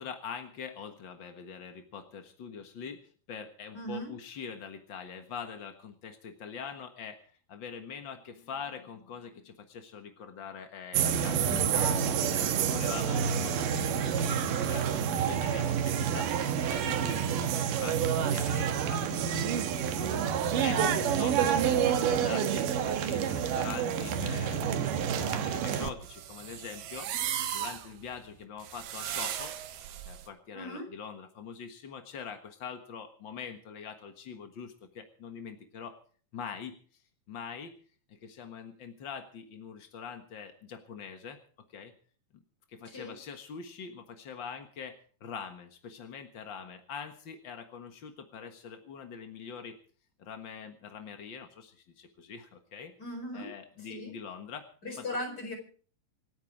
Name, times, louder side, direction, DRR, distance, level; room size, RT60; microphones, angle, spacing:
voice 1, 0.0-11.5 11.7-11.9 12.4-27.1 27.5-29.5 30.0-36.0 36.3-36.8 37.3-37.7 38.1-41.4 41.7-41.9 42.3-42.4 42.7-44.9 45.2-49.8 50.2-52.9 53.3-54.7, left 6 dB, 60° left, 6 dB, 1.2 m, -44 dB
voice 2, 3.7-4.1 11.4-12.8 30.5-30.9 42.8-43.1 53.0-53.5 53.8-54.1 54.8-55.5, left 1 dB, 25° left, 4 dB, 5.1 m, -39 dB
sound 1, 10.9-25.9, right 8 dB, 65° right, 2.7 m, -28 dB
sound 2, 25.1-30.3, right 10 dB, 85° right, 3.3 m, -37 dB
27.0 x 9.6 x 4.8 m, 0.43 s
omnidirectional pair, 4.4 m